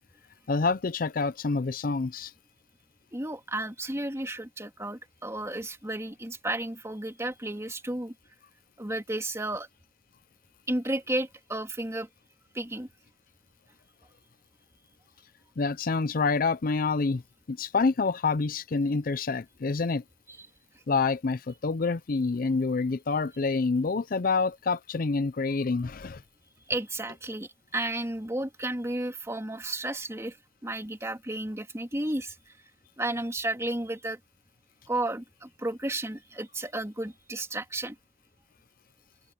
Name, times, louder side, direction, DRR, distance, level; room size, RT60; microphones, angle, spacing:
voice 1, 0.5-2.3 15.6-17.2 17.5-20.0 20.9-26.2, left 4 dB, 50° left, 0.5 m, -27 dB
voice 2, 3.1-8.1 8.8-9.7 10.7-12.1 12.5-12.9 20.4-20.5 26.7-30.4 30.6-32.4 33.0-34.2 34.9-37.9, right 1 dB, 15° right, 2.8 m, -33 dB
open air
head